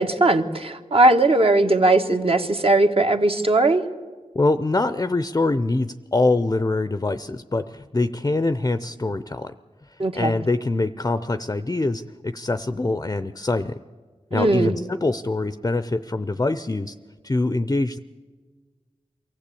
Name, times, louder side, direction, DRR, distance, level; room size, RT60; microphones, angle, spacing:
voice 1, 0.0-3.8 10.0-10.3 14.3-14.8, right 2 dB, 50° right, 5 dB, 1.5 m, -19 dB
voice 2, 4.3-9.5 10.1-13.7 14.3-16.9 17.2-18.0, left 2 dB, 25° left, 12 dB, 0.6 m, -24 dB
23.5 x 15.0 x 8.5 m, 1.4 s
wide cardioid pair, 60°, 12 cm